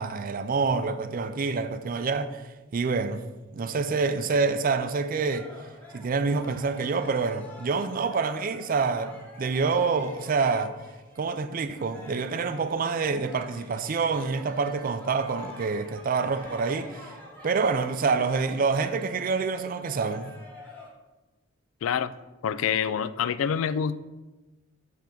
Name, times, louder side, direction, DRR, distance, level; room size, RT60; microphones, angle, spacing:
voice 1, 0.0-2.4 2.7-3.2 3.5-5.5 5.9-10.7 11.2-17.0 17.4-20.4, right 4 dB, 45° right, 0.4 m, -27 dB
sound 1, 5.3-11.3 11.7-20.9, left 1 dB, 10° left, 1.6 m, -47 dB
voice 2, 21.8-22.1 22.4-24.0, left 7 dB, 80° left, 0.3 m, -26 dB
7.5 x 3.5 x 5.2 m
head